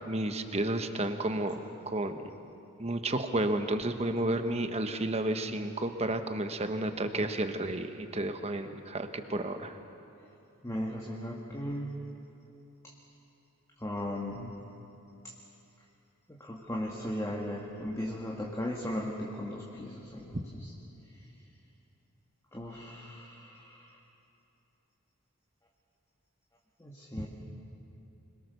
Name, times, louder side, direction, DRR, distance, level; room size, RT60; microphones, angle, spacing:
voice 1, 0.1-2.3 2.8-9.8 20.3-20.4, right 1 dB, 30° right, 7 dB, 1.2 m, -32 dB
voice 2, 10.6-12.0 13.8-14.6 16.3-20.7 22.5-24.0 26.8-27.3, left 1 dB, 15° left, -2 dB, 1.8 m, -37 dB
26.0 x 22.5 x 6.8 m, 2.9 s
head